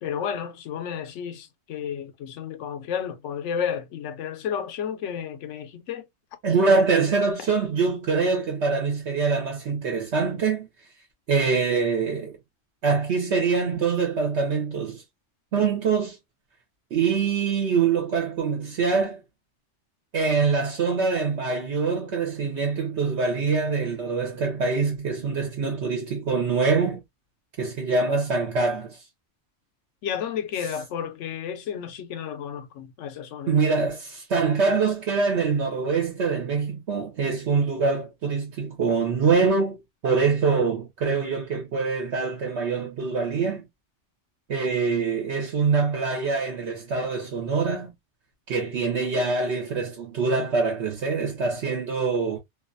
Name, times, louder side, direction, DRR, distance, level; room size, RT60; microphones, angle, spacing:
voice 1, 0.0-6.1 30.0-33.6, left 8 dB, 90° left, 0.9 m, -32 dB
voice 2, 6.4-10.7 11.3-12.4 12.8-15.0 15.5-16.2 16.9-19.2 20.1-27.0 27.6-29.0 33.5-43.7 44.5-47.9 48.5-52.4, right 4 dB, 70° right, 1.0 m, -24 dB
2.5 x 2.3 x 2.4 m
omnidirectional pair, 1.2 m